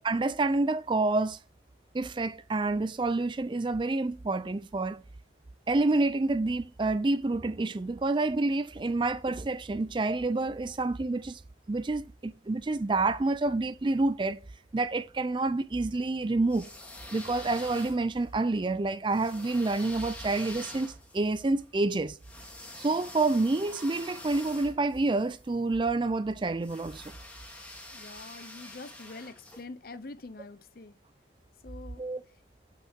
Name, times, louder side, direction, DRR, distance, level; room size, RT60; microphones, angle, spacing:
voice 1, 0.0-1.4 1.9-5.0 5.7-11.4 11.7-14.4 14.7-16.7 17.1-22.2 22.8-27.1 32.0-32.2, right 2 dB, 25° right, 0.4 m, -28 dB
sound 1, 16.4-18.3 19.1-25.5 26.6-29.6, left 1 dB, 5° left, 2.0 m, -46 dB
voice 2, 27.9-31.0 31.6-32.0, left 3 dB, 50° left, 0.7 m, -45 dB
8.2 x 6.5 x 3.6 m
head